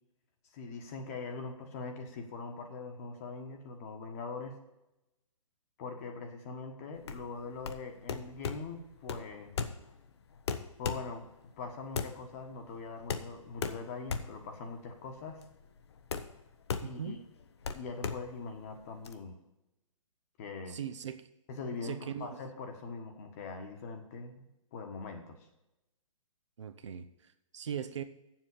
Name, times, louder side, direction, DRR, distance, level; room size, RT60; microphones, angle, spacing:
voice 1, 0.5-4.6 5.8-9.5 10.8-11.3 11.6-15.4 16.8-17.2 17.7-19.4 20.4-20.8 21.5-24.4 24.7-25.5, left 4 dB, 25° left, 4 dB, 1.4 m, -42 dB
sound 1, 7.0-19.1, left 6 dB, 50° left, 0.9 m, -39 dB
voice 2, 16.8-17.2 20.7-21.3 21.8-22.4 26.6-28.0, right 8 dB, 60° right, 11 dB, 0.9 m, -40 dB
7.5 x 7.5 x 8.3 m, 0.92 s
hypercardioid pair, 170°, 17 cm